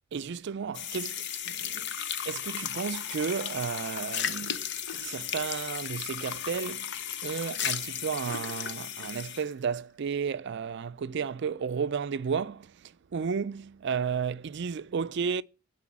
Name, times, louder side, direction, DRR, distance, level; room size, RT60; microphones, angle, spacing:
voice 1, 0.1-1.9 2.3-4.7 5.0-6.9 7.2-15.4, right 6 dB, 60° right, 0.4 m, -33 dB
sound 1, 0.7-9.5, left 9 dB, 60° left, 0.7 m, -35 dB
10.0 x 4.2 x 7.3 m
head